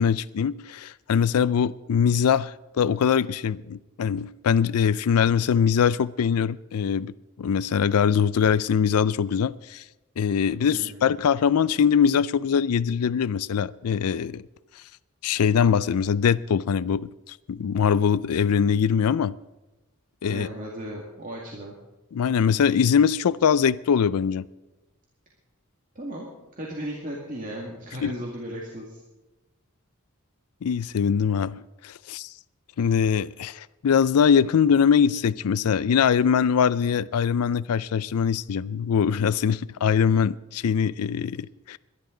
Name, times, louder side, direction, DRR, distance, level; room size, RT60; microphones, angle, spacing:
voice 1, 0.0-7.1 7.4-9.8 10.2-14.4 15.2-19.3 20.2-20.5 22.1-24.5 28.0-28.1 30.6-32.3 32.8-41.8, left 7 dB, 85° left, 0.4 m, -22 dB
voice 2, 10.6-11.0 20.3-21.8 26.0-26.3 26.6-29.0, equal, 35° right, 2.1 m, -36 dB
22.0 x 11.5 x 3.8 m
head